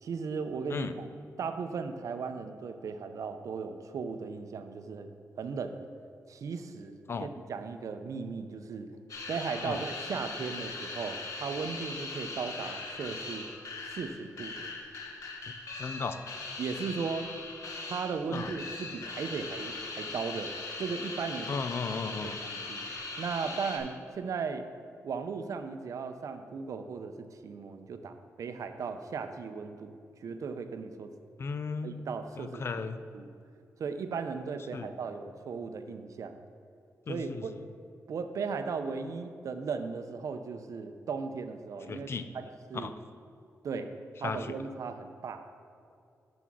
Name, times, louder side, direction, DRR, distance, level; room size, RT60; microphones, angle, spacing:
voice 1, 0.0-1.1 1.4-5.1 5.4-5.8 6.3-8.9 9.3-13.5 13.9-14.7 16.6-17.3 17.9-20.5 20.8-21.6 22.2-22.9 23.2-24.7 25.0-29.9 30.2-31.1 31.8-32.8 33.1-33.3 33.8-36.4 37.1-37.5 38.1-42.1 42.3-42.9 43.6-43.9 44.2-45.4, right 5 dB, 70° right, 8 dB, 0.5 m, -37 dB
sound 1, 9.1-23.8, left 3 dB, 65° left, 1.1 m, -40 dB
voice 2, 15.8-16.2 18.3-18.5 21.5-22.4 31.4-31.9 32.4-33.0 34.7-34.9 37.1-37.4 41.9-42.3 42.7-42.9 44.2-44.5, left 5 dB, 45° left, 11 dB, 0.4 m, -35 dB
6.9 x 6.1 x 6.1 m, 2.4 s
wide cardioid pair, 135°, 6 cm